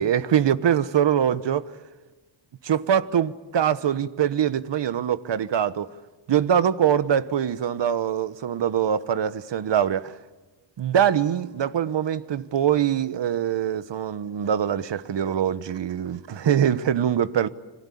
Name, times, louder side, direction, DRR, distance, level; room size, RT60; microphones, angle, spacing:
voice 1, 0.0-1.7 2.6-5.9 6.3-10.2 10.8-17.5, right 9 dB, 60° right, 1.2 m, -23 dB
29.0 x 21.5 x 8.6 m
cardioid pair, 100°, 48 cm